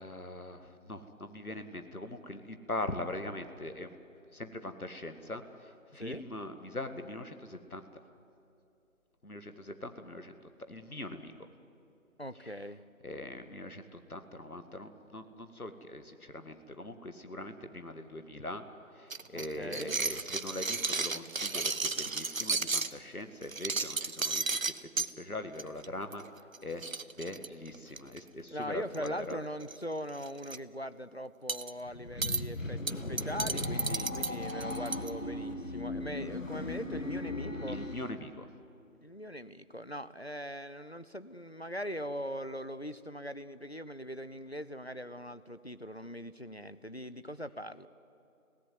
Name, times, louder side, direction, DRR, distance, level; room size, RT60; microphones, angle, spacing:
voice 1, 0.0-3.9 4.3-7.8 9.2-10.3 10.7-11.3 12.4-12.5 13.0-18.6 19.0-26.2 26.6-26.8 27.2-29.4 37.7-38.5, left 1 dB, 90° left, 8 dB, 2.0 m, -42 dB
voice 2, 12.2-12.8 19.3-20.0 28.5-37.8 39.0-47.9, equal, 50° left, 13 dB, 0.7 m, -41 dB
sound 1, 19.1-22.9 23.4-25.1 25.6-25.9 26.1-26.3 26.5-26.6 26.8-28.2 28.9-29.3 29.6-29.8 30.1-30.6 31.5-31.7 32.2-32.4 32.9-35.1, right 4 dB, 70° right, 0.8 m, -33 dB
sound 2, 31.9-38.1, left 2 dB, 65° left, 1.7 m, -37 dB
23.5 x 17.0 x 9.5 m, 2.7 s
figure-of-eight pair, 180°, 42 cm